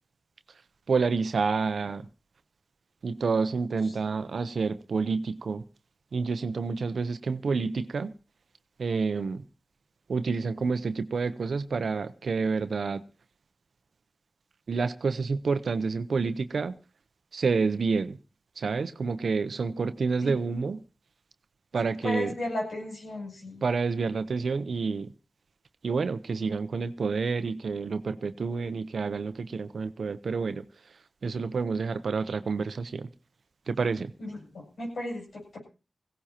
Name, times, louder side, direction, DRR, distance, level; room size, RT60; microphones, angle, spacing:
voice 1, 0.9-2.1 3.0-5.6 6.1-8.1 8.8-9.4 10.1-13.0 14.7-16.7 17.3-18.2 18.6-20.8 21.7-22.3 23.6-25.1 25.8-30.6 31.2-33.1 33.7-34.1, right 4 dB, 80° right, 11 dB, 0.7 m, -28 dB
voice 2, 22.0-23.6 34.2-35.6, left 1 dB, 80° left, -2 dB, 8.0 m, -35 dB
21.0 x 16.5 x 2.9 m, 0.33 s
cardioid pair, 45°, 0 cm